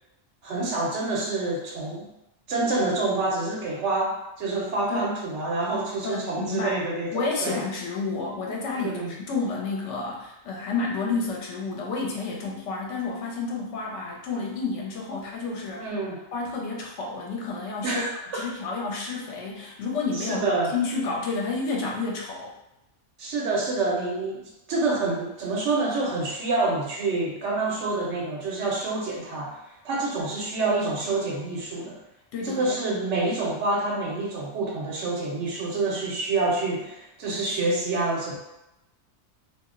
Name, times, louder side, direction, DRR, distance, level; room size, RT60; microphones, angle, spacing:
voice 1, 0.4-2.1 2.5-7.6 8.7-9.1 15.8-16.2 17.8-18.4 20.2-20.7 23.2-29.6 29.8-32.0 32.4-38.4, right 2 dB, 80° right, -2 dB, 0.9 m, -27 dB
voice 2, 6.0-6.8 7.1-15.9 16.3-18.0 18.3-20.4 20.7-22.5 32.3-32.8, left 4 dB, 80° left, -2 dB, 0.9 m, -30 dB
2.3 x 2.0 x 3.6 m, 0.91 s
omnidirectional pair, 1.2 m